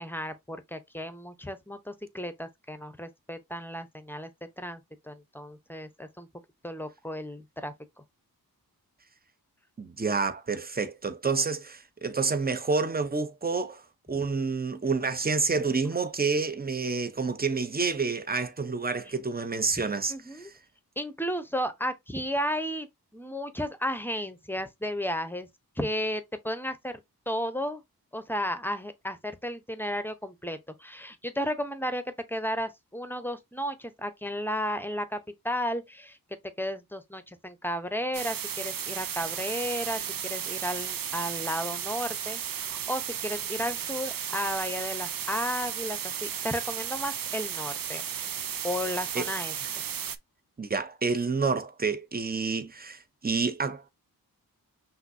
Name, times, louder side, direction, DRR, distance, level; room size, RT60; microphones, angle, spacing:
voice 1, 0.0-4.3 4.6-4.8 5.0-6.3 6.6-7.7 20.1-20.5 21.0-22.9 23.1-25.5 25.8-27.0 27.3-27.8 28.1-32.0 32.3-35.2 35.4-36.2 36.6-40.0 40.3-48.0 48.6-49.8, equal, 5° left, 0.9 m, -33 dB
voice 2, 9.8-13.8 14.1-20.5 49.1-49.3 50.6-53.9, right 4 dB, 25° right, 0.8 m, -29 dB
sound 1, 38.1-50.2, right 9 dB, 60° right, 0.6 m, -34 dB
5.8 x 2.7 x 2.7 m
cardioid pair, 50°, 38 cm